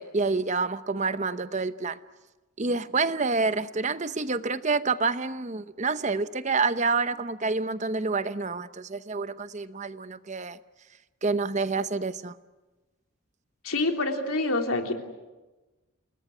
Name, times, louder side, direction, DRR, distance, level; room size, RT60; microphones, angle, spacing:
voice 1, 0.0-2.0 2.6-10.6 11.2-12.4, right 4 dB, 35° right, 0.8 m, -28 dB
voice 2, 13.6-14.9, left 2 dB, 90° left, 3.4 m, -26 dB
29.5 x 19.5 x 9.8 m
head